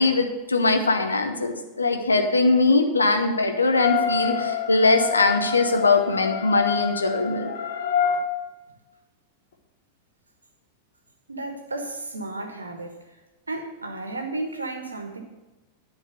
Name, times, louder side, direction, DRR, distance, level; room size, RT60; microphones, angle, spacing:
voice 1, 0.0-7.5, left 3 dB, 75° left, 5 dB, 1.0 m, -21 dB
sound 1, 3.7-8.2, left 7 dB, 60° left, 1.5 m, -27 dB
voice 2, 11.3-13.0 13.5-15.2, right 2 dB, 80° right, 5 dB, 1.3 m, -33 dB
10.5 x 4.5 x 7.8 m, 1.1 s
figure-of-eight pair, 90°, 0 cm